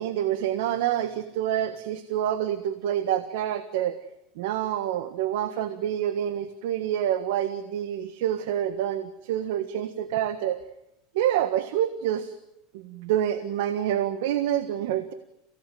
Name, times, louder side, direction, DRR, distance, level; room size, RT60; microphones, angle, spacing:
voice 1, 0.0-3.9 4.4-10.6 11.1-12.3 12.7-15.1, right 11 dB, 75° right, 11 dB, 1.5 m, -27 dB
29.0 x 17.5 x 9.4 m, 0.84 s
supercardioid pair, 140°, 0 cm